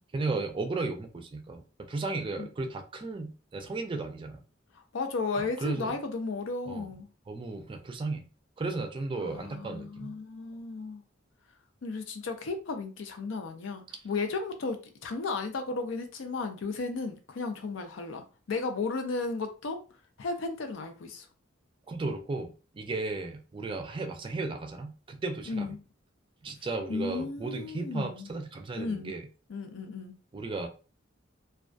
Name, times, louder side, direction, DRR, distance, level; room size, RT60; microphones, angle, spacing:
voice 1, 0.1-4.4 5.4-5.9 6.7-6.9 7.3-8.3 8.6-10.2 21.9-25.7 26.4-29.3 30.3-30.7, right 3 dB, 25° right, 0.3 m, -35 dB
voice 2, 4.7-7.1 9.2-11.0 11.8-19.8 20.2-21.3 25.5-25.8 26.9-28.3 28.8-29.1 29.5-30.1, left 3 dB, 75° left, 0.5 m, -34 dB
2.3 x 2.2 x 2.5 m
head